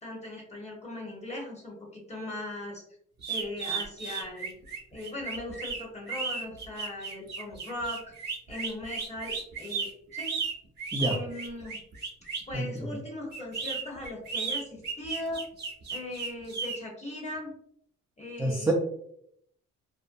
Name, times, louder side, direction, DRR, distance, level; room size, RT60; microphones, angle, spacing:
voice 1, 0.0-2.8 3.3-4.5 4.9-8.1 8.5-10.3 11.0-11.8 12.5-15.4 15.9-17.5 18.2-18.7, left 1 dB, 20° left, -2 dB, 1.0 m, -39 dB
sound 1, 3.2-12.5 13.3-16.8, right 5 dB, 35° right, 0.8 m, -34 dB
voice 2, 12.5-12.8 18.4-18.7, right 2 dB, 5° right, -3 dB, 0.4 m, -27 dB
2.6 x 2.1 x 2.5 m, 0.69 s
cardioid pair, 90°, 30 cm